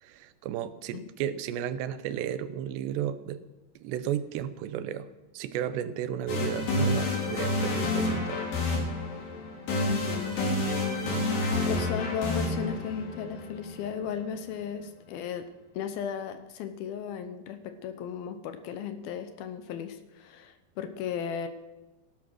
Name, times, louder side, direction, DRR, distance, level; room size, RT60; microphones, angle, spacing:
voice 1, 0.0-3.4 3.8-5.1 5.3-8.4 11.0-11.3, right 10 dB, 85° right, 13 dB, 3.0 m, -34 dB
sound 1, 6.3-14.2, left 2 dB, 55° left, 5.0 m, -29 dB
voice 2, 9.9-10.4 10.9-11.1 11.7-15.5 15.7-21.5, left 7 dB, 75° left, 9 dB, 2.5 m, -35 dB
17.5 x 11.0 x 6.2 m, 1.1 s
omnidirectional pair, 4.9 m